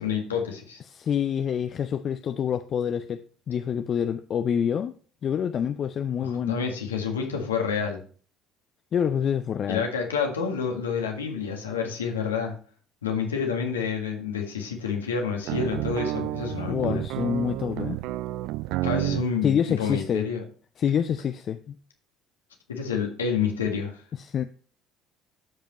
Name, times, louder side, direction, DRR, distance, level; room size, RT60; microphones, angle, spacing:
voice 1, 0.0-0.8 6.2-8.0 9.7-12.5 13.0-17.0 18.8-20.4 22.7-24.0, left 6 dB, 90° left, 1.6 m, -28 dB
voice 2, 0.9-4.9 5.2-6.6 8.9-9.9 16.7-18.0 19.4-20.3 20.8-21.7 24.2-24.4, left 8 dB, 45° left, 0.5 m, -27 dB
sound 1, 15.4-19.3, right 16 dB, 65° right, 0.3 m, -30 dB
13.0 x 5.2 x 3.0 m
hypercardioid pair, 60°, 0 cm